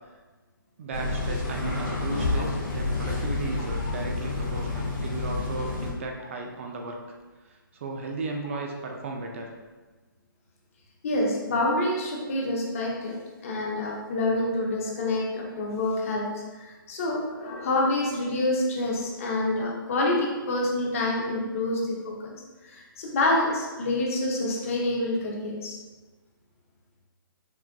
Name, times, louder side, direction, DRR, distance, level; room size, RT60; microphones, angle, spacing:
voice 1, 0.8-7.0 7.5-9.5, right 3 dB, 35° right, 2 dB, 0.4 m, -35 dB
sound 1, 0.9-5.9, left 3 dB, 65° left, 1.4 m, -29 dB
voice 2, 11.0-22.4 22.6-25.8, left 2 dB, 35° left, -1 dB, 0.7 m, -27 dB
5.9 x 2.5 x 2.2 m, 1.3 s
hypercardioid pair, 160°, 12 cm